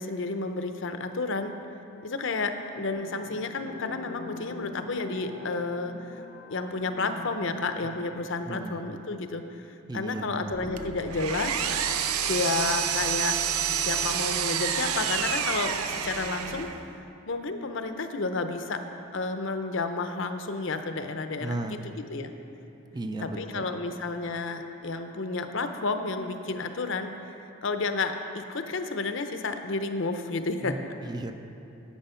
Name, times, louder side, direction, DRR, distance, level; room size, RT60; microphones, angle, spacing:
voice 1, 0.0-1.5 2.0-6.2 6.5-11.6 12.3-13.4 13.7-16.7 17.3-18.8 19.1-21.8 22.1-22.3 23.2-27.1 27.6-30.8, left 3 dB, 55° left, 7 dB, 0.6 m, -31 dB
sound 1, 2.9-8.9, left 2 dB, 90° left, 1.3 m, -43 dB
voice 2, 8.5-8.9 9.9-10.8 21.4-21.8 22.9-23.7 30.6-31.3, right 2 dB, 20° right, 7 dB, 0.4 m, -36 dB
sound 2, 10.5-16.6, right 1 dB, 50° right, 1.7 m, -44 dB
Power tool, 10.8-16.8, right 8 dB, 90° right, 0.6 m, -28 dB
10.5 x 8.8 x 5.6 m, 2.8 s
head